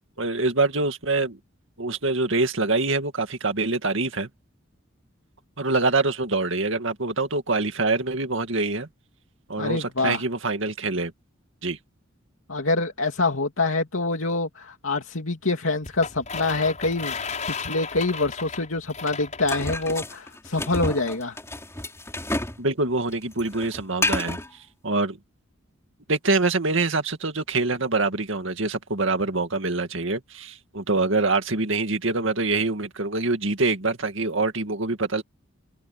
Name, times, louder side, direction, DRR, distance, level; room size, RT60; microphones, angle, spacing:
voice 1, 0.2-1.4 1.8-4.3 5.6-8.9 9.5-11.1 11.6-11.8 22.6-24.4 24.8-25.2 26.1-35.2, right 3 dB, 70° right, 2.2 m, -25 dB
voice 2, 9.6-10.2 12.5-17.1 17.5-21.4, left 3 dB, 80° left, 2.7 m, -25 dB
sound 1, 15.8-20.0, left 5 dB, 35° left, 6.0 m, -34 dB
sound 2, 19.5-22.6 22.9-24.5, left 2 dB, 15° left, 4.1 m, -30 dB
open air
head